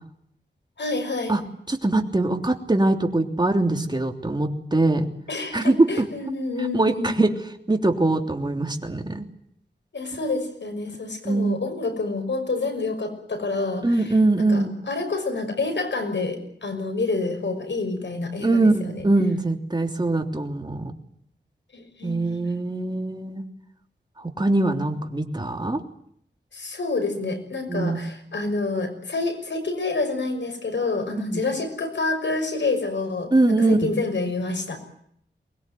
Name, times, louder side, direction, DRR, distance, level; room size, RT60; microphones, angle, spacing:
voice 1, 0.8-1.3 5.3-7.1 9.9-19.1 21.7-22.4 26.5-34.8, left 3 dB, 75° left, 7 dB, 6.1 m, -28 dB
voice 2, 1.7-5.1 5.5-6.0 6.7-7.3 7.7-9.2 11.2-11.6 13.8-14.7 18.4-20.9 22.0-23.4 24.4-25.8 27.7-28.0 31.3-31.4 33.3-33.9, right 2 dB, 25° right, 4 dB, 3.2 m, -22 dB
23.5 x 20.5 x 9.4 m, 0.69 s
wide cardioid pair, 85°, 19 cm